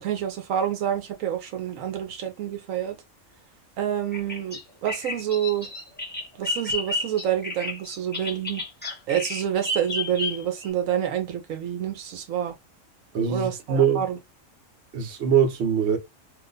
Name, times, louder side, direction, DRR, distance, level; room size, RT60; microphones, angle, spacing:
voice 1, 0.0-2.9 3.8-5.7 6.4-8.6 9.1-12.5 13.3-14.2, right 10 dB, 85° right, 1.1 m, -28 dB
Bird vocalization bird call bird song, 4.1-10.7, left 2 dB, 10° left, 0.5 m, -31 dB
voice 2, 13.1-14.0 14.9-16.0, right 7 dB, 60° right, 1.0 m, -22 dB
2.8 x 2.1 x 3.7 m
omnidirectional pair, 1.4 m